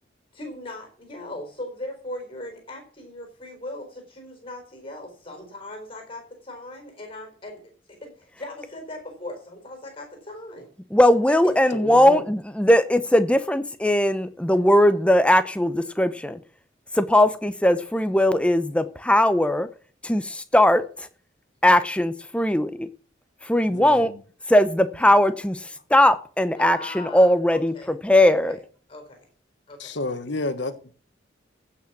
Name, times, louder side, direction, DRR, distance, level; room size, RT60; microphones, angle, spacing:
voice 1, 0.3-7.6 7.9-10.7 11.3-11.8 26.6-28.6 28.9-29.3 29.7-30.0, left 1 dB, 30° left, 4.3 m, -39 dB
voice 2, 10.9-16.4 16.9-19.7 20.0-21.1 21.6-22.9 23.4-24.1 24.5-28.6, left 1 dB, 5° left, 0.7 m, -19 dB
voice 3, 11.7-12.2 23.7-24.2 29.8-30.8, left 2 dB, 65° left, 1.4 m, -30 dB
15.5 x 6.0 x 6.1 m
head